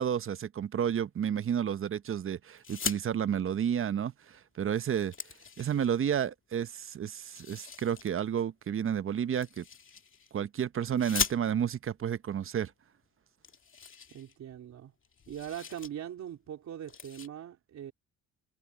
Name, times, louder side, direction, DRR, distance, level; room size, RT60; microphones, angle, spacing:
voice 1, 0.0-5.1 5.6-9.6 10.3-12.7, right 8 dB, 45° right, 0.8 m, -31 dB
sound 1, 2.6-3.0 4.3-4.4 4.8-6.1 7.2-8.1 9.4-10.3 11.0-11.8 12.7-12.8 13.0-13.1 13.4-14.7 15.0-15.9 16.3-16.5 16.8-17.3, left 6 dB, 40° left, 2.4 m, -39 dB
voice 2, 14.1-14.9 15.3-17.9, right 10 dB, 65° right, 3.6 m, -41 dB
cardioid pair, 90°, 30 cm